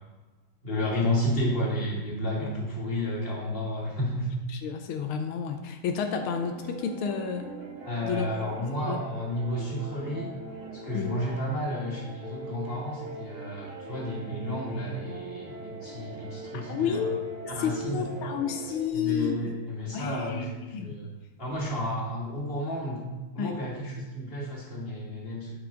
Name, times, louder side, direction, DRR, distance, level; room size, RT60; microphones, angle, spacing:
voice 1, 0.6-4.3 7.8-10.3 10.8-17.1 17.5-18.0 18.9-21.1 21.4-23.0 23.3-25.5, left 1 dB, 25° left, -5 dB, 2.4 m, -31 dB
voice 2, 4.5-7.4 8.0-8.3 8.9-9.0 10.9-11.2 16.7-17.3 17.6-19.3 19.9-20.5 20.7-21.0 23.4-23.5, left 7 dB, 85° left, 5 dB, 1.5 m, -30 dB
sound 1, 6.1-18.9, right 2 dB, 90° right, 2.1 m, -41 dB
11.0 x 5.7 x 3.8 m, 1.2 s
omnidirectional pair, 2.3 m